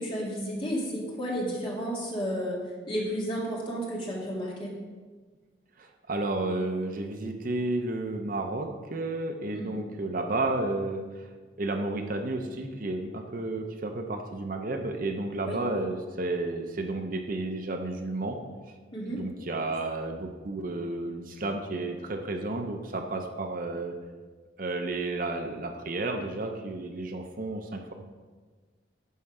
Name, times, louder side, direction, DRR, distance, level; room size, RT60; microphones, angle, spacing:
voice 1, 0.0-2.6 2.9-4.7 9.5-9.8 15.5-15.6 18.9-19.2, equal, 30° left, -3 dB, 1.9 m, -32 dB
voice 2, 5.8-11.2 11.6-18.4 19.1-23.9 24.6-27.9, right 2 dB, 50° right, 4 dB, 0.7 m, -32 dB
11.0 x 4.4 x 4.9 m, 1.4 s
head